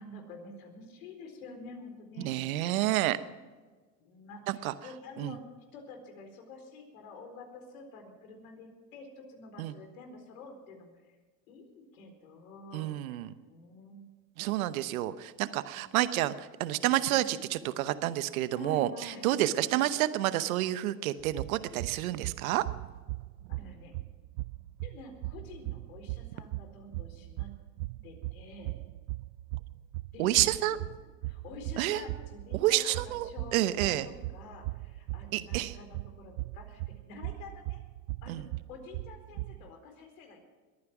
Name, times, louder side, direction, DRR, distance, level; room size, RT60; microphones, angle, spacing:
voice 1, 0.0-2.3 4.0-5.5 5.7-11.1 11.5-14.0 15.7-15.9 17.1-17.8 18.5-19.9 23.5-24.0 24.8-27.5 28.0-28.7 30.1-30.9 31.2-37.8 38.2-40.5, left 2 dB, 80° left, 5 dB, 4.2 m, -48 dB
voice 2, 2.2-3.2 4.5-4.7 5.2-5.3 9.6-9.7 12.7-13.3 14.4-22.6 30.2-30.8 31.8-32.0 32.5-34.1 35.3-35.7 38.3-38.4, right 14 dB, 85° right, 13 dB, 1.0 m, -29 dB
sound 1, 21.2-39.7, right 20 dB, 65° right, 0.5 m, -39 dB
22.0 x 9.7 x 6.0 m, 1.4 s
supercardioid pair, 110°, 41 cm